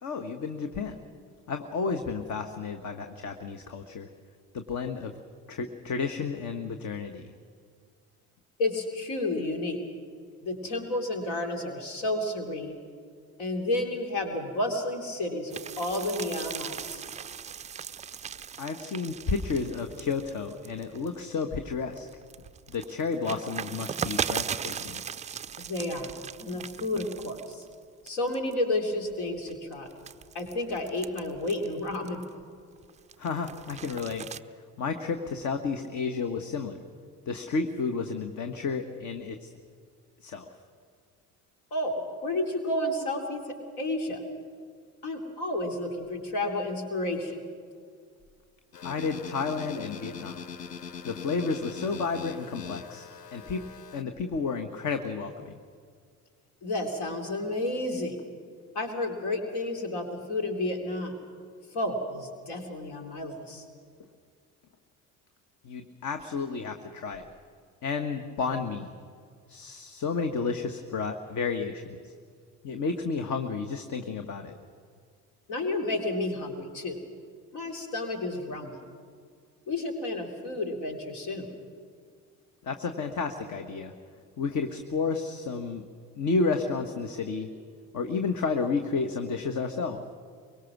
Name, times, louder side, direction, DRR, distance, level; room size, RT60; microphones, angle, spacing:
voice 1, 0.0-1.0 1.5-4.1 4.5-5.2 5.5-7.3 18.6-22.1 22.7-25.0 33.2-34.3 34.5-36.8 37.2-39.5 40.2-40.5 48.8-50.4 51.0-53.6 53.9-55.5 65.6-67.3 67.8-68.9 69.5-72.1 72.6-74.5 82.6-83.9 84.4-85.9 86.1-87.5 87.9-90.0, left 4 dB, 40° left, 6 dB, 1.4 m, -31 dB
voice 2, 8.6-9.8 10.4-12.8 13.4-17.0 25.6-26.1 26.4-27.6 28.0-29.9 30.3-32.2 41.7-44.2 45.0-47.4 56.6-58.2 58.7-61.2 61.7-63.6 75.5-77.0 77.5-78.8 79.7-81.5, left 1 dB, 55° left, 4 dB, 3.1 m, -31 dB
sound 1, 15.5-21.4 21.9-27.7 28.1-28.5 29.1-32.4 32.8-34.4, right 7 dB, 15° right, 0.5 m, -38 dB
sound 2, 48.7-54.0, left 6 dB, 85° left, 0.7 m, -41 dB
23.5 x 23.5 x 6.1 m, 2.1 s
figure-of-eight pair, 55°, 47 cm